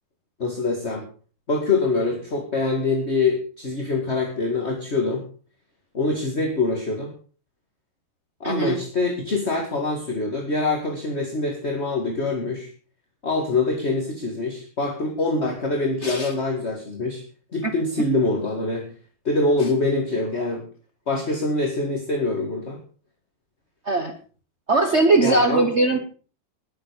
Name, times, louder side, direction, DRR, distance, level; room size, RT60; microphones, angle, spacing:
voice 1, 0.4-1.0 1.5-5.2 5.9-7.1 8.4-12.7 13.2-17.2 17.5-18.8 19.2-20.6 21.1-22.8 25.2-25.7, left 3 dB, 35° left, 1 dB, 2.3 m, -24 dB
voice 2, 8.4-8.8 16.0-16.3 17.6-17.7 23.8-24.1 24.7-26.0, right 3 dB, 40° right, 6 dB, 1.2 m, -20 dB
20.0 x 7.8 x 5.1 m, 0.39 s
omnidirectional pair, 2.2 m